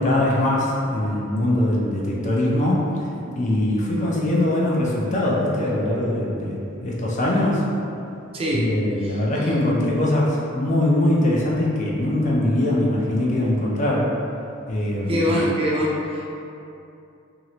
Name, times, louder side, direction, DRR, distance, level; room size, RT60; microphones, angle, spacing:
voice 1, 0.0-2.9 3.4-7.6 8.5-14.1 14.7-15.2, left 1 dB, 35° left, -4 dB, 0.4 m, -22 dB
voice 2, 8.3-8.7 9.0-9.2 15.1-16.3, equal, 30° right, -4 dB, 0.4 m, -23 dB
3.0 x 2.4 x 2.8 m, 2.7 s
head